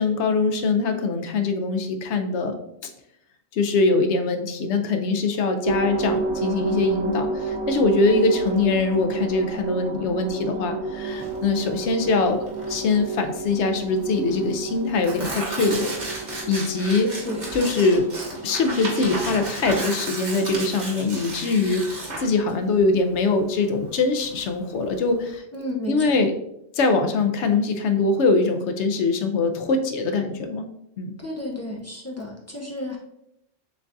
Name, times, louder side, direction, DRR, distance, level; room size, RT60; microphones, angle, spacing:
voice 1, 0.0-2.6 3.5-15.9 16.5-17.3 17.5-18.1 18.4-25.4 25.9-26.3 26.7-30.7 31.0-31.1, left 3 dB, 80° left, 6 dB, 0.9 m, -23 dB
sound 1, 5.6-19.4, right 3 dB, 70° right, 1.0 m, -31 dB
Tearing, 11.1-25.4, right 2 dB, 40° right, 1.1 m, -34 dB
voice 2, 25.5-26.3 31.2-33.0, left 1 dB, 20° left, -2 dB, 0.5 m, -32 dB
6.7 x 2.4 x 2.5 m, 0.79 s
omnidirectional pair, 1.2 m